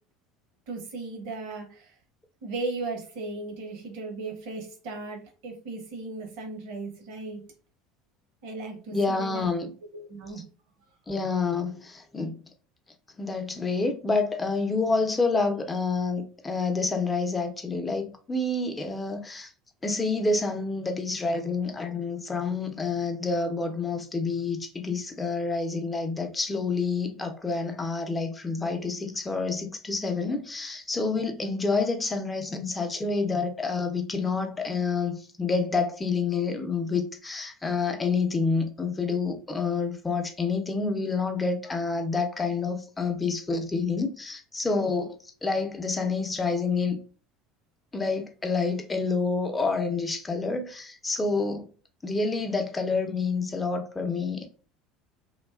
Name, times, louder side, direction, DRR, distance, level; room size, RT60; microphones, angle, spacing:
voice 1, 0.7-1.9 2.4-7.4 8.4-9.5 9.9-10.4, right 3 dB, 70° right, 0.8 m, -36 dB
voice 2, 8.9-9.7 11.1-12.4 13.2-19.5 19.8-47.0 47.9-51.7 52.0-54.5, left 4 dB, 20° left, 0.6 m, -28 dB
2.5 x 2.2 x 2.3 m
hypercardioid pair, 80°, 0 cm